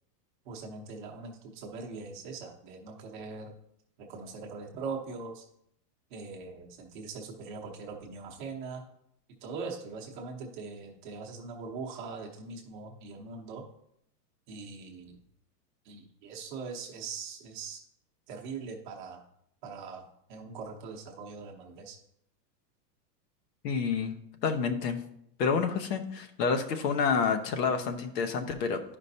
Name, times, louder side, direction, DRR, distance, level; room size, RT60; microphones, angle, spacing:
voice 1, 0.5-3.5 4.0-5.4 6.1-8.8 9.4-13.6 14.5-15.2 15.8-17.8 18.3-19.2 19.6-22.0, right 4 dB, 30° right, 0 dB, 0.8 m, -41 dB
voice 2, 23.6-24.1 24.4-25.0 25.4-28.8, left 5 dB, 75° left, 6 dB, 1.1 m, -28 dB
11.0 x 5.1 x 2.7 m, 0.74 s
supercardioid pair, 180°, 49 cm